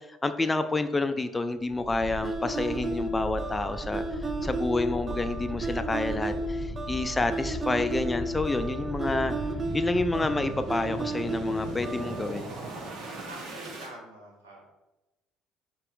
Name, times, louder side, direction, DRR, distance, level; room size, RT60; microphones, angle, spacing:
voice 1, 0.1-4.0 4.4-9.3 9.7-12.5, left 2 dB, 20° left, 9 dB, 0.4 m, -29 dB
sound 1, 1.8-13.9, right 2 dB, 60° right, 1.1 m, -38 dB
sound 2, 2.2-12.3, right 1 dB, 30° right, 0.6 m, -33 dB
sound 3, 3.6-12.6, right 2 dB, 15° right, 1.1 m, -53 dB
voice 2, 13.3-14.6, right 1 dB, 90° right, -3 dB, 1.2 m, -46 dB
4.3 x 3.0 x 3.8 m, 1.0 s
hypercardioid pair, 60°, 0 cm